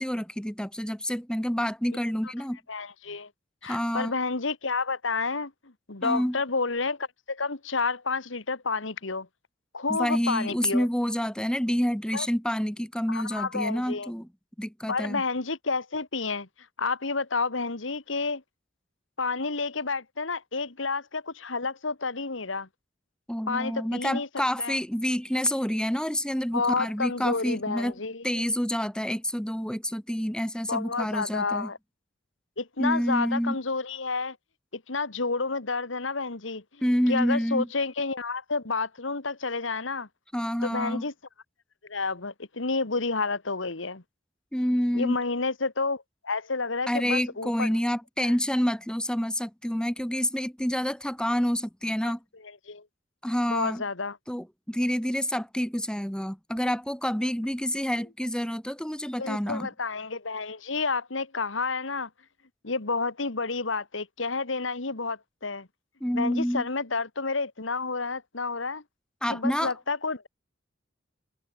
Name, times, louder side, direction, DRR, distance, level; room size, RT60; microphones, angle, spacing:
voice 1, 0.0-2.6 3.6-4.1 6.0-6.4 9.9-14.3 14.6-15.2 23.3-27.9 28.2-31.7 32.8-33.6 36.8-37.7 40.3-41.0 44.5-45.2 46.9-52.2 53.2-53.8 54.3-59.7 66.0-66.7 69.2-69.7, equal, 5° left, 1.9 m, -28 dB
voice 2, 2.7-3.3 3.6-9.3 9.7-10.9 12.1-12.3 13.1-14.1 14.9-16.5 16.8-18.4 19.2-22.7 23.5-24.3 24.6-24.8 26.5-28.4 30.7-31.8 32.6-34.4 34.7-40.1 40.6-41.1 41.8-44.0 44.9-47.7 48.2-48.3 52.0-52.1 52.4-52.9 53.5-54.2 59.2-62.1 62.6-65.7 66.1-68.8 69.3-70.3, left 4 dB, 85° left, 1.9 m, -30 dB
head